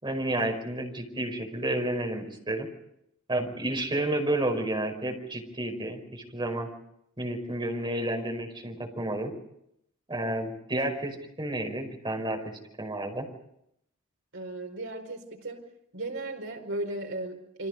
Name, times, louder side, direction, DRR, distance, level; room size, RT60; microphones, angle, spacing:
voice 1, 0.0-2.7 3.3-6.7 7.2-9.3 10.1-12.5 12.8-13.3, right 1 dB, 20° right, 4 dB, 5.1 m, -31 dB
voice 2, 14.3-15.6 15.9-17.7, right 2 dB, 60° right, 3 dB, 5.0 m, -36 dB
28.5 x 25.5 x 5.3 m, 0.77 s
head